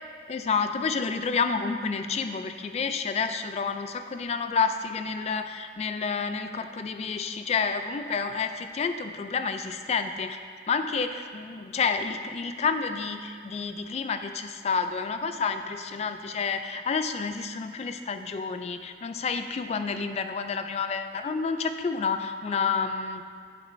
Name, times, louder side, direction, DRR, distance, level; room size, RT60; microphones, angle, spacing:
voice 1, 0.3-10.4 10.7-23.2, left 5 dB, 35° left, 8 dB, 0.3 m, -29 dB
10.5 x 5.2 x 2.6 m, 2.1 s
head